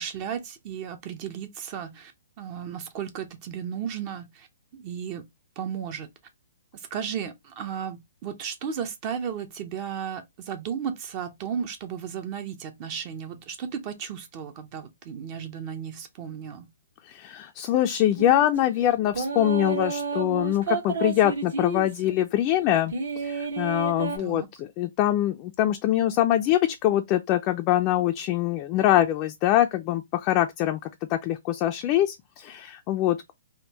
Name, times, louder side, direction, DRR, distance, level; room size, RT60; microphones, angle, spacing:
voice 1, 0.0-2.1 2.4-4.5 4.7-5.2 5.6-6.1 6.7-16.7 24.2-24.5, right 8 dB, 35° right, 0.5 m, -34 dB
voice 2, 17.0-33.3, left 13 dB, 35° left, 0.3 m, -24 dB
sound 1, 18.2-18.5 19.1-22.1 22.9-24.2, right 4 dB, 75° right, 1.2 m, -30 dB
3.5 x 2.1 x 2.7 m
hypercardioid pair, 140°, 0 cm